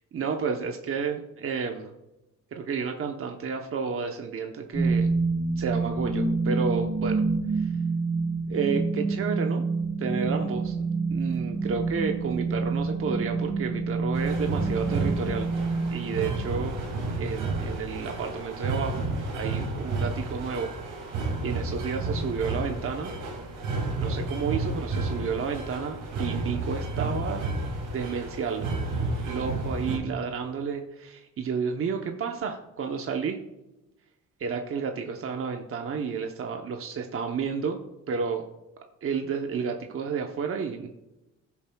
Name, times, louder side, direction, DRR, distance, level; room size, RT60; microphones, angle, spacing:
voice 1, 0.1-1.9 2.5-5.2 5.6-7.2 7.5-7.7 8.5-9.6 10.0-10.8 11.1-15.5 15.9-16.8 17.2-19.1 19.3-20.7 21.0-21.1 21.4-23.1 24.0-27.5 27.9-28.6 29.2-33.4 34.4-37.8 38.1-38.5 39.0-40.9, right 5 dB, 45° right, 3 dB, 0.9 m, -31 dB
sound 1, 4.7-16.7, right 4 dB, 30° left, 2.8 m, -27 dB
sound 2, 14.1-30.0, right 3 dB, 90° right, 2.4 m, -31 dB
15.5 x 7.0 x 2.3 m, 0.96 s
cardioid pair, 90°, 30 cm